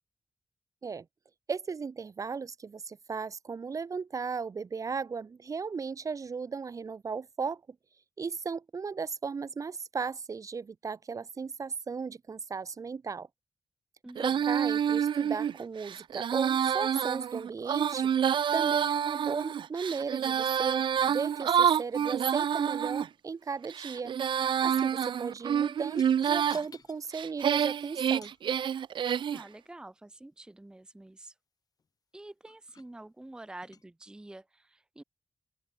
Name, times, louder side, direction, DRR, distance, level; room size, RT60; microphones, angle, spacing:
voice 1, 1.5-7.6 8.2-13.3 14.2-18.1 18.5-24.1 24.6-28.3, right 5 dB, 45° right, 1.0 m, -36 dB
Female singing, 14.2-23.1 23.6-26.6 27.1-29.4, right 8 dB, 85° right, 0.6 m, -28 dB
sound 1, 22.9-23.2 24.8-25.2 25.9-27.1 28.2-28.5 29.1-29.4 31.8-31.9 32.5-32.9 33.6-33.9, left 5 dB, 50° left, 5.6 m, -55 dB
voice 2, 29.3-31.3 32.1-35.0, right 2 dB, 10° right, 0.7 m, -48 dB
open air
wide cardioid pair, 155°, 8 cm